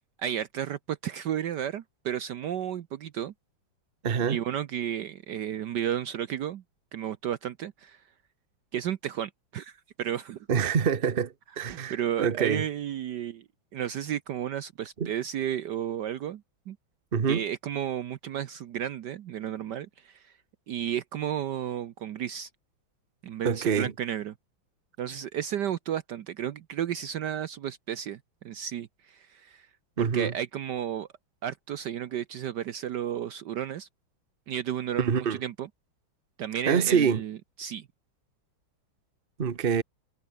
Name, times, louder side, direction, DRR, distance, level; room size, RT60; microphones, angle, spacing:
voice 1, 0.2-3.3 4.3-6.6 6.9-8.0 8.7-10.5 11.7-13.4 13.7-16.8 17.3-20.3 20.7-22.5 23.2-24.3 25.0-29.7 30.0-31.1 31.4-33.9 34.5-35.7 36.4-37.9, right 10 dB, 65° right, 1.3 m, -33 dB
voice 2, 4.0-4.4 10.5-12.6 15.0-15.1 17.1-17.5 23.4-23.9 30.0-30.3 35.0-35.4 36.7-37.2 39.4-39.8, right 7 dB, 30° right, 1.2 m, -26 dB
omnidirectional pair, 2.2 m